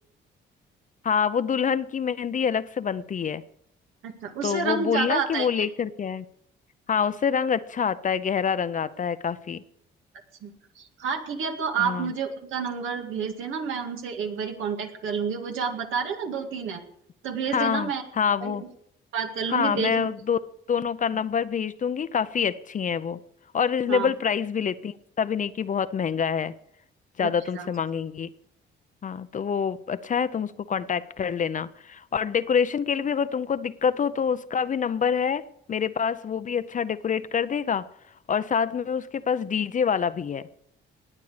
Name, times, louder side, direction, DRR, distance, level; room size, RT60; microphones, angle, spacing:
voice 1, 1.0-3.4 4.4-6.2 6.9-9.6 11.8-12.1 17.5-17.9 18.2-18.6 19.5-20.4 20.7-23.2 23.5-26.5 27.2-28.3 29.0-37.9 38.3-40.5, left 7 dB, 40° left, 13 dB, 0.6 m, -26 dB
voice 2, 4.0-5.7 10.4-10.5 10.8-16.8 17.2-18.0 18.4-18.6 19.1-20.1 23.9-24.1 27.2-27.7, right 6 dB, 85° right, 4 dB, 2.1 m, -29 dB
19.5 x 8.4 x 5.0 m, 0.72 s
cardioid pair, 90°, 20 cm